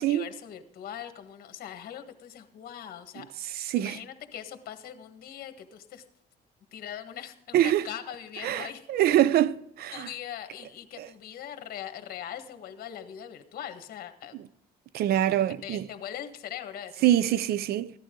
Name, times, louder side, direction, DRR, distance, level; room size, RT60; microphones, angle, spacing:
voice 1, 0.0-6.0 6.7-9.0 9.9-14.3 15.3-17.3, left 10 dB, 60° left, 1.6 m, -41 dB
voice 2, 3.6-4.0 7.5-7.8 8.4-10.1 11.0-11.1 14.9-15.9 17.0-17.9, right 12 dB, 65° right, 0.6 m, -24 dB
15.5 x 11.5 x 3.8 m
cardioid pair, 110°, 17 cm